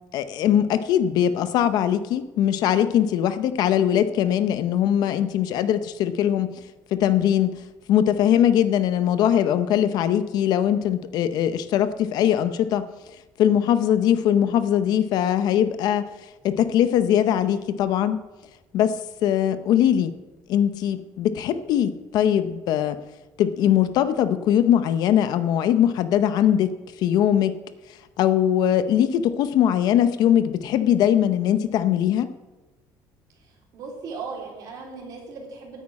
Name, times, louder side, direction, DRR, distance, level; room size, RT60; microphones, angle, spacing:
voice 1, 0.1-6.6 6.9-12.9 13.4-18.2 18.7-20.1 20.5-23.0 23.4-27.6 27.9-32.3, left 10 dB, 60° left, 12 dB, 0.7 m, -21 dB
voice 2, 9.7-10.0 33.7-35.8, right 4 dB, 50° right, 0 dB, 3.7 m, -37 dB
9.5 x 9.4 x 8.6 m, 1.1 s
cardioid pair, 170°, 8 cm